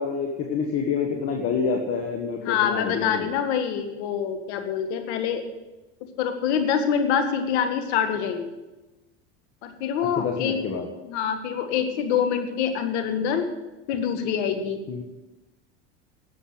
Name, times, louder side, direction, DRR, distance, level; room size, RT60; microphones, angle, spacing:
voice 1, 0.0-3.3 10.2-10.9 14.9-15.0, left 5 dB, 45° left, 2 dB, 1.6 m, -27 dB
voice 2, 2.4-5.5 6.0-8.5 9.6-10.6 11.0-13.5 13.9-14.8, left 7 dB, 80° left, 7 dB, 1.9 m, -25 dB
12.0 x 7.8 x 8.0 m, 1.1 s
supercardioid pair, 115°, 34 cm